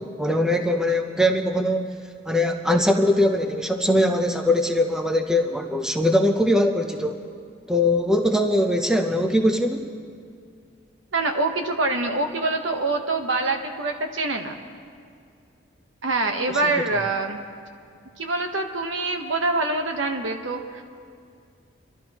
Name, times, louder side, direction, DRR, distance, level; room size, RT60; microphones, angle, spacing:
voice 1, 0.0-1.9 2.3-7.2 7.7-9.9 16.5-16.6, left 1 dB, 5° right, 4 dB, 0.5 m, -21 dB
voice 2, 11.1-14.6 16.0-17.4 18.2-20.8, right 3 dB, 75° right, 5 dB, 1.1 m, -25 dB
28.5 x 12.5 x 3.0 m, 2.3 s
head